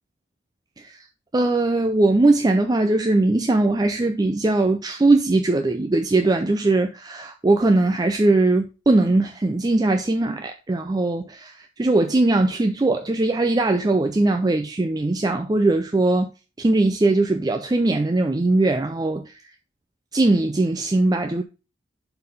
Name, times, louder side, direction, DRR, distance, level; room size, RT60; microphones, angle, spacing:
voice 1, 0.8-1.1 1.3-16.3 16.6-19.4 20.1-21.4, right 2 dB, 20° right, 0.4 m, -20 dB
6.5 x 3.9 x 5.3 m
head